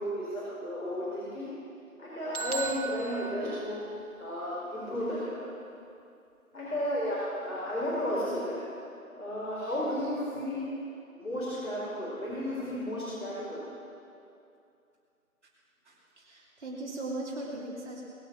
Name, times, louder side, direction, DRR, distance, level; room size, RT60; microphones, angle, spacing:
voice 1, 0.0-1.5 2.0-3.8 4.2-5.4 6.5-8.6 9.1-10.7 11.1-13.7, equal, 75° left, -7 dB, 4.3 m, -33 dB
sound 1, 2.3-4.3, right 5 dB, 80° right, 0.7 m, -38 dB
voice 2, 15.8-18.0, right 2 dB, 50° right, -6 dB, 2.7 m, -38 dB
22.0 x 8.2 x 6.1 m, 2.6 s
figure-of-eight pair, 155°, 43 cm